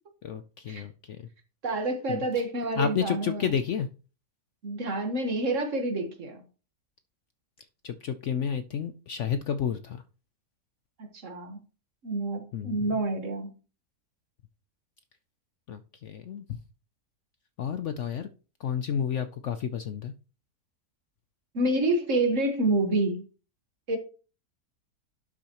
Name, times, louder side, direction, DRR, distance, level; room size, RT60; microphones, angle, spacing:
voice 1, 0.2-1.3 2.1-2.4 2.8-3.9 7.8-10.0 12.5-12.8 15.7-16.6 17.6-18.3 18.6-20.1, left 8 dB, 65° left, 0.7 m, -31 dB
voice 2, 1.6-3.5 4.6-6.4 11.0-11.6 12.0-13.5 21.5-23.3 23.9-24.0, right 2 dB, 50° right, 1.6 m, -28 dB
11.5 x 6.2 x 3.0 m
omnidirectional pair, 1.7 m